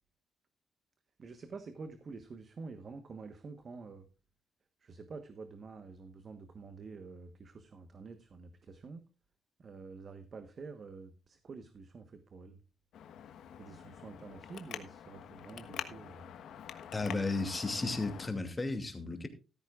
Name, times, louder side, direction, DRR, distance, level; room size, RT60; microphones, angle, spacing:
voice 1, 1.2-4.0 4.8-9.0 9.6-12.6 13.6-16.3, right 4 dB, 45° right, 9 dB, 1.3 m, -48 dB
Traffic noise roadway noise, 12.9-18.3, left 9 dB, 75° left, 1.3 m, -46 dB
voice 2, 16.9-19.3, left 3 dB, 20° left, 6 dB, 2.5 m, -34 dB
14.5 x 13.0 x 2.5 m, 0.32 s
cardioid pair, 90°, 0 cm